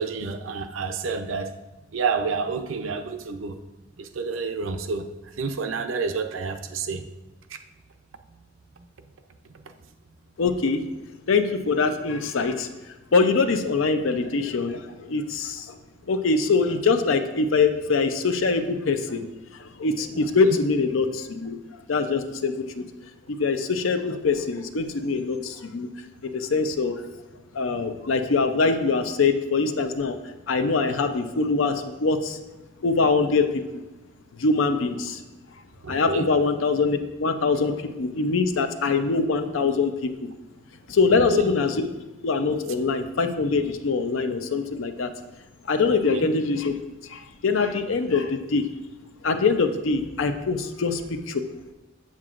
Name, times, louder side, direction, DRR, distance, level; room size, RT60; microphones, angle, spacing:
voice 1, 0.0-1.5 1.9-3.6 4.0-5.1 5.4-7.0 7.5-7.6 9.5-9.6 20.1-20.6 35.8-36.3 41.1-41.5 46.1-46.3, right 4 dB, 80° right, 7 dB, 0.5 m, -29 dB
voice 2, 10.4-10.8 11.3-12.7 13.1-15.8 16.1-19.3 19.5-21.6 21.9-22.9 23.3-25.9 26.2-27.0 27.5-30.2 30.5-32.4 32.8-33.5 34.3-35.2 35.9-40.3 40.9-41.8 42.2-45.1 45.7-46.7 47.1-48.7 49.2-51.4, left 4 dB, 80° left, 8 dB, 0.6 m, -23 dB
7.5 x 7.4 x 2.5 m, 1.1 s
head